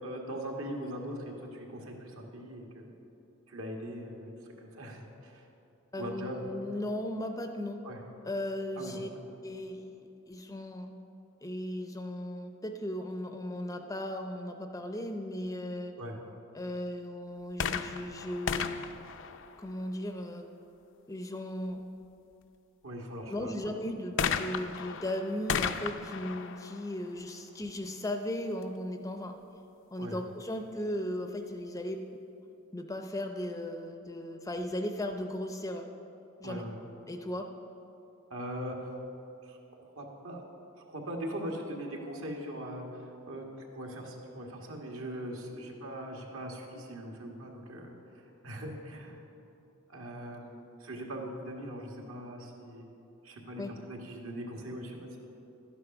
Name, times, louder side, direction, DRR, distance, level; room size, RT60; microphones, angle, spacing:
voice 1, 0.0-2.9 3.5-4.3 4.6-5.4 5.9-6.4 7.8-8.0 8.8-9.2 16.0-16.2 22.8-23.7 30.0-30.2 36.4-36.7 38.3-38.8 39.4-40.4 40.8-42.9 43.3-43.5 43.7-49.2 49.9-50.5 50.8-52.9 53.2-55.2, equal, 65° right, 1 dB, 1.7 m, -41 dB
voice 2, 5.9-7.8 8.2-9.1 9.4-9.8 10.3-10.9 11.4-15.9 16.5-18.8 19.6-20.5 21.1-21.8 23.3-29.4 29.9-32.0 32.7-35.9 36.4-36.7 37.1-37.5 53.6-53.7, left 1 dB, 15° left, 5 dB, 0.6 m, -36 dB
sound 1, 17.5-20.1 24.2-27.8 28.6-28.7, left 7 dB, 60° left, 0.5 m, -35 dB
12.0 x 9.9 x 5.9 m, 2.9 s
head